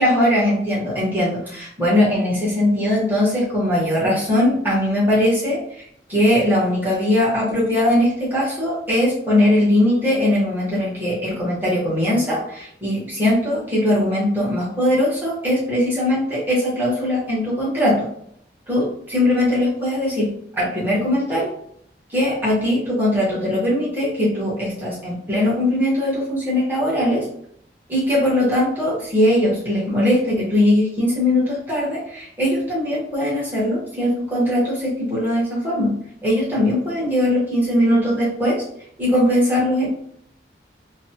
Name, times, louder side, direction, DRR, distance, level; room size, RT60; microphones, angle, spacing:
voice 1, 0.0-5.6 6.1-18.1 18.7-21.5 22.1-27.3 27.9-35.9 36.2-38.6 39.0-39.9, left 1 dB, 10° right, -7 dB, 1.2 m, -20 dB
3.1 x 2.3 x 2.8 m, 0.67 s
head